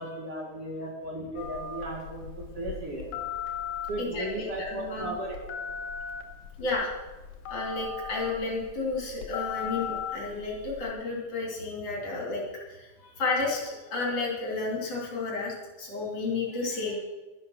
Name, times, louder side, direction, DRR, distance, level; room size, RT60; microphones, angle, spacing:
voice 1, 0.0-3.2 3.9-5.6, right 1 dB, 45° right, -2 dB, 2.7 m, -36 dB
Telephone, 1.4-10.9, left 7 dB, 80° left, 2.8 m, -38 dB
voice 2, 4.0-5.1 6.6-6.9 7.5-17.0, left 3 dB, 50° left, -3 dB, 3.7 m, -32 dB
12.5 x 10.5 x 6.4 m, 1.2 s
omnidirectional pair, 3.8 m